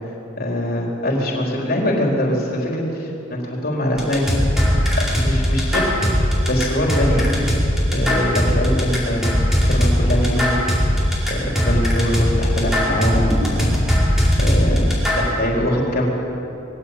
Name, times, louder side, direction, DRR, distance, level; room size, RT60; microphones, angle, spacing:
voice 1, 0.4-4.4 4.9-7.3 7.9-9.4 9.7-11.0 11.3-14.1 14.4-14.9 15.1-16.1, left 1 dB, 45° left, -1 dB, 4.3 m, -23 dB
sound 1, 4.0-15.3, equal, ahead, 5.2 m, -19 dB
22.0 x 17.0 x 8.6 m, 3.0 s
head